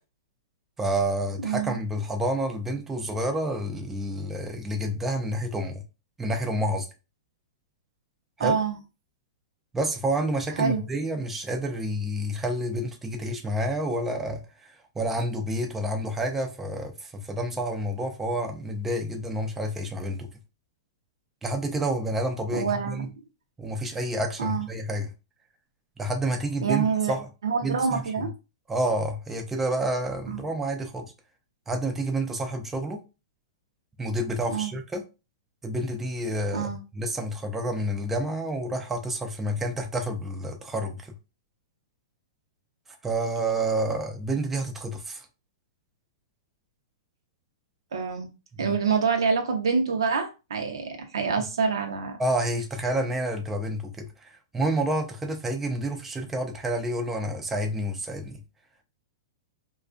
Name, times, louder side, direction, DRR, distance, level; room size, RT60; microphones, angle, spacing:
voice 1, 0.8-5.8 6.2-6.9 8.4-8.6 9.7-20.3 21.4-23.1 23.6-25.1 26.0-27.3 27.6-28.0 28.7-31.1 31.7-33.0 34.0-35.0 35.6-41.1 43.0-45.3 48.5-48.7 51.4-51.5 52.2-58.4, right 1 dB, 10° right, 0.4 m, -29 dB
voice 2, 1.4-1.8 8.4-8.8 10.6-10.8 22.5-23.2 24.4-24.7 26.6-27.1 27.4-28.3 30.3-30.4 34.5-34.7 36.5-36.8 47.9-48.3 48.6-52.2, right 5 dB, 85° right, 0.7 m, -26 dB
2.3 x 2.2 x 2.4 m
hypercardioid pair, 145°, 2 cm